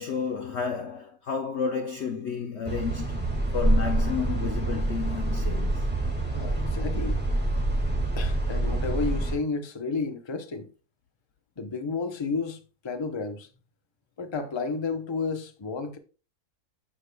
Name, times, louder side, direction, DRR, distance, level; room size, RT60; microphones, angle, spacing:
voice 1, 0.0-5.9, left 6 dB, 60° left, 0.7 m, -31 dB
sound 1, 2.6-9.3, right 2 dB, 5° right, 1.5 m, -26 dB
voice 2, 6.3-7.2 8.2-10.7 11.6-12.6 12.8-13.5 14.2-16.0, left 4 dB, 25° left, 0.6 m, -31 dB
13.5 x 4.8 x 2.2 m
omnidirectional pair, 1.7 m